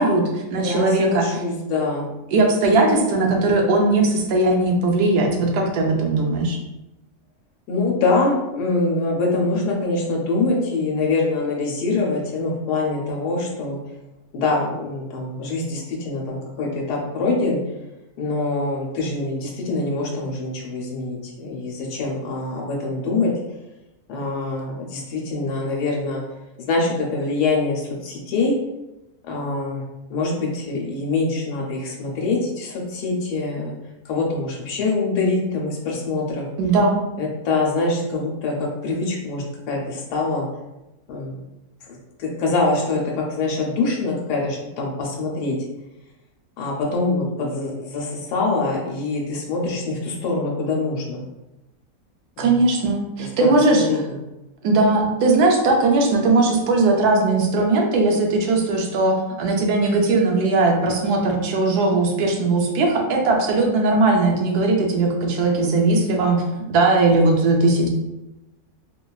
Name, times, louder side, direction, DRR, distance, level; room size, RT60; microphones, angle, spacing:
voice 1, 0.0-1.2 2.3-6.6 36.6-37.0 52.4-53.9 54.6-66.4 66.7-67.9, right 2 dB, 80° right, 1 dB, 1.1 m, -19 dB
voice 2, 0.5-2.1 7.7-13.8 14.3-17.6 18.2-23.3 24.1-26.2 26.6-28.5 29.2-29.8 30.1-33.7 34.0-36.5 37.2-40.5 41.1-41.4 41.8-45.6 46.6-51.2 52.4-52.6 53.2-53.5 53.9-54.2, left 3 dB, 85° left, -1 dB, 1.1 m, -24 dB
3.1 x 2.2 x 2.3 m, 0.99 s
omnidirectional pair, 1.6 m